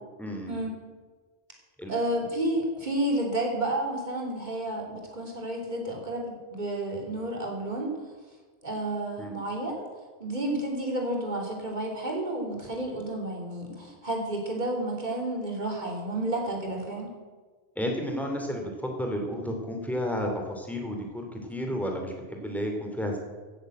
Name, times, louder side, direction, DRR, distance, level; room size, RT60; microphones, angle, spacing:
voice 1, 0.2-0.5 1.8-1.9 9.2-9.4 17.8-23.2, equal, ahead, 1 dB, 2.7 m, -32 dB
voice 2, 1.9-7.9 8.6-9.9 10.2-17.1, right 1 dB, 40° right, 0 dB, 3.2 m, -31 dB
16.5 x 8.0 x 7.9 m, 1.4 s
omnidirectional pair, 1.1 m